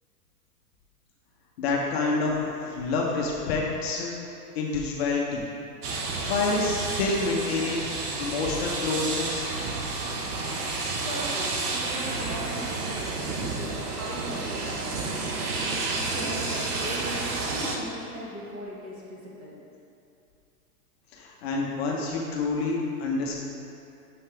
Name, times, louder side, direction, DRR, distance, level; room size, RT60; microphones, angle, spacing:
voice 1, 1.6-4.1 4.5-5.4 6.2-7.8 8.2-9.5 21.1-23.4, left 3 dB, 40° left, -2 dB, 0.7 m, -27 dB
sound 1, 5.8-17.8, right 3 dB, 70° right, 1.0 m, -31 dB
voice 2, 10.2-10.6 11.0-15.6 16.0-17.2 17.5-19.6, right 1 dB, 25° right, -5 dB, 1.1 m, -39 dB
6.7 x 5.5 x 3.3 m, 2.6 s
hypercardioid pair, 150°, 47 cm